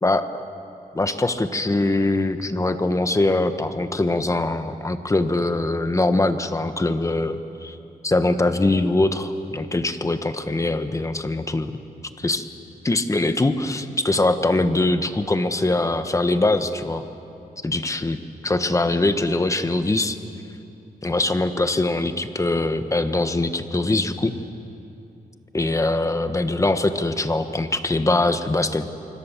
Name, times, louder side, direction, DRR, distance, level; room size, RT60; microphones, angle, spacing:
voice 1, 0.0-0.4 0.9-7.8 8.0-11.7 12.2-12.5 12.8-17.0 17.6-20.2 21.0-24.3 25.5-28.9, left 2 dB, 20° left, 9 dB, 1.3 m, -22 dB
26.0 x 24.5 x 7.5 m, 2.8 s
wide cardioid pair, 115°, 16 cm